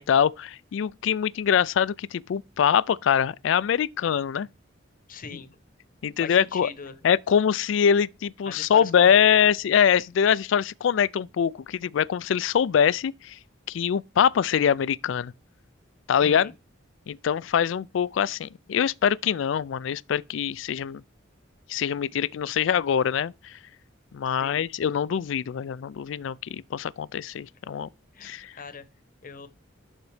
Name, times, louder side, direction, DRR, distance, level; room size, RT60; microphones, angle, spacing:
voice 1, 0.0-4.5 6.0-6.7 7.0-13.4 13.7-15.3 16.1-16.5 17.1-21.0 21.7-23.5 24.1-27.9 28.2-28.5, left 8 dB, 70° left, 0.3 m, -23 dB
voice 2, 5.1-5.5 6.2-7.0 8.4-9.2 16.2-16.5 24.2-24.6 28.1-28.8 29.2-29.5, left 5 dB, 45° left, 1.0 m, -39 dB
11.5 x 4.0 x 3.3 m
head